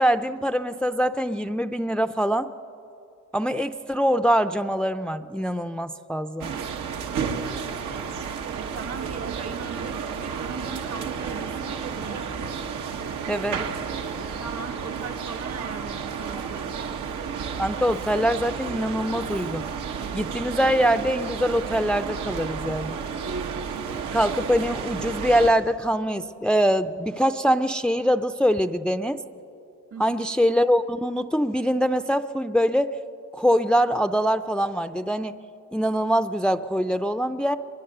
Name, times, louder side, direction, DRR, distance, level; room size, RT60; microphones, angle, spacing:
voice 1, 0.0-2.5 3.3-6.5 13.3-13.7 17.6-19.6 20.1-23.0 24.1-29.2 30.0-32.9 33.3-35.3 35.7-37.6, equal, 5° left, 8 dB, 0.5 m, -23 dB
sound 1, 6.4-25.5, right 6 dB, 85° right, 1.5 m, -32 dB
voice 2, 8.6-12.5 14.4-17.0 29.9-30.2, right 5 dB, 50° right, 9 dB, 1.4 m, -38 dB
23.0 x 22.5 x 6.7 m, 2.8 s
cardioid pair, 90°, 30 cm